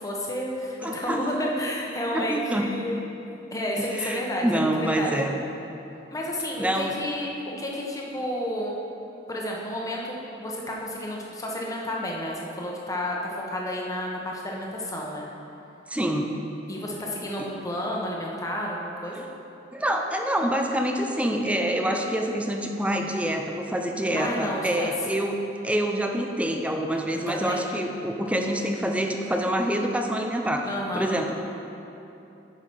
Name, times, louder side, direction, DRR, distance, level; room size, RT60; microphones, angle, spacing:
voice 1, 0.0-3.0 3.5-5.1 6.1-7.3 7.6-8.7 9.3-15.3 16.7-19.2 24.1-24.9 27.3-27.6 30.7-31.1, left 1 dB, 20° left, -2 dB, 1.1 m, -31 dB
voice 2, 0.8-1.3 2.1-2.7 3.8-5.3 6.6-7.0 15.9-16.3 19.7-30.7 30.9-31.4, right 1 dB, 5° right, 3 dB, 0.5 m, -26 dB
10.0 x 5.8 x 4.7 m, 2.9 s
head